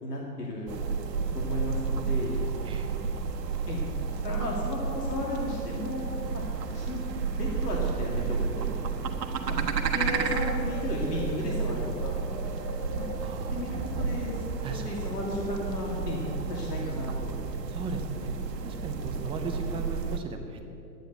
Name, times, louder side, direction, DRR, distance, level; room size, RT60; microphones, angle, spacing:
voice 1, 0.0-0.7 1.3-2.4 3.7-3.8 4.2-6.1 6.3-6.4 6.7-7.0 7.3-8.7 9.5-9.6 9.9-12.2 12.9-13.1 13.5-14.4 14.7-16.2 16.5-17.3, left 2 dB, 70° left, -2 dB, 2.6 m, -34 dB
sound 1, 0.7-20.2, right 5 dB, 75° right, 1.3 m, -31 dB
sound 2, 4.0-15.1, left 3 dB, 20° left, 2.7 m, -46 dB
voice 2, 13.2-13.5 14.6-14.8 17.7-18.4 18.6-20.8, right 3 dB, 10° right, 5 dB, 0.6 m, -37 dB
10.0 x 9.2 x 8.0 m, 2.8 s
hypercardioid pair, 130°, 50 cm